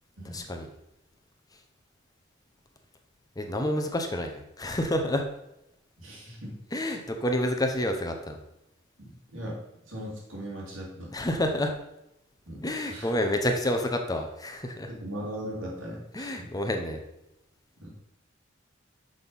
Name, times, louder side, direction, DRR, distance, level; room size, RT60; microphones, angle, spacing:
voice 1, 0.2-0.7 3.4-5.3 6.7-8.4 11.1-11.7 12.6-14.9 16.1-17.0, left 1 dB, 20° left, 4 dB, 0.7 m, -29 dB
voice 2, 6.0-6.6 9.0-9.6 9.9-11.1 12.5-13.1 14.9-16.3 17.8-17.9, equal, 90° right, -3 dB, 2.8 m, -39 dB
6.4 x 5.9 x 5.4 m, 0.86 s
head